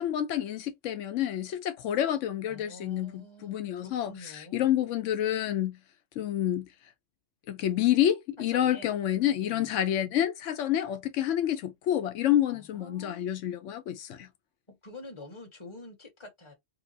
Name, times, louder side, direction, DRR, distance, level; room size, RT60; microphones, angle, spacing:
voice 1, 0.0-5.8 6.2-6.7 7.5-14.3, left 11 dB, 85° left, 0.9 m, -28 dB
voice 2, 2.5-4.7 8.5-8.9 9.2-9.7 12.5-13.2 14.7-16.5, left 2 dB, 25° left, 1.2 m, -47 dB
4.5 x 2.0 x 2.6 m
omnidirectional pair, 1.2 m